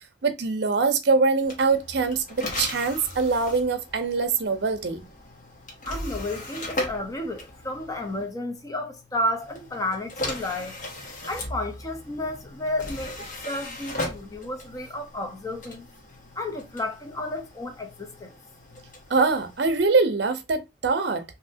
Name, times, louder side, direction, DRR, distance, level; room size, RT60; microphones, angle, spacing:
voice 1, 0.2-5.0 19.1-21.2, right 4 dB, 60° right, 0.6 m, -23 dB
sound 1, 1.4-8.3 9.4-19.9, left 1 dB, 45° left, 1.0 m, -38 dB
voice 2, 5.8-10.8 11.3-15.9 16.4-18.3, left 1 dB, 20° left, 0.6 m, -32 dB
3.2 x 2.7 x 2.7 m
head